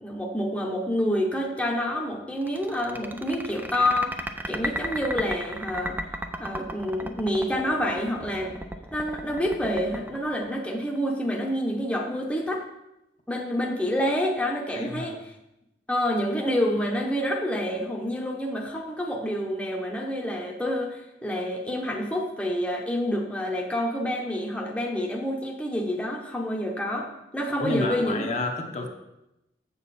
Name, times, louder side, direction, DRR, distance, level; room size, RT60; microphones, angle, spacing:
voice 1, 0.0-4.1 4.5-6.0 6.4-8.6 8.9-12.6 13.3-15.2 15.9-28.3 28.7-28.9, equal, 5° left, -1 dB, 0.9 m, -28 dB
sound 1, 2.4-11.1, right 1 dB, 10° right, 0.4 m, -34 dB
voice 2, 14.7-15.2 27.5-28.9, left 2 dB, 40° left, 2 dB, 0.9 m, -30 dB
7.2 x 7.2 x 4.2 m, 0.89 s
head